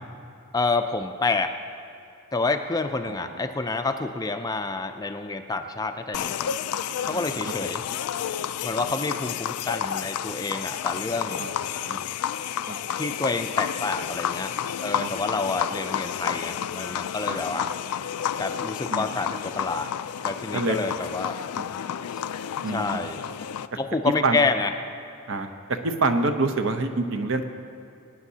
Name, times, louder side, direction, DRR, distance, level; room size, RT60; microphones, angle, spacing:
voice 1, 0.5-1.5 2.3-6.5 7.0-7.8 8.6-11.5 13.0-14.5 14.8-17.7 18.4-19.9 20.2-21.4 22.1-22.2 22.7-23.2 23.8-24.7, left 3 dB, 15° left, 7 dB, 0.4 m, -28 dB
voice 2, 3.1-3.4 7.1-7.4 11.4-12.0 12.7-12.8 15.0-15.1 17.3-17.7 18.9-19.1 20.5-20.8 21.6-21.7 22.6-23.0 24.2-24.4 25.3-27.4, right 3 dB, 60° right, 7 dB, 0.8 m, -27 dB
sound 1, 6.1-23.7, left 9 dB, 85° left, 0.4 m, -31 dB
22.5 x 9.8 x 2.8 m, 2.7 s
head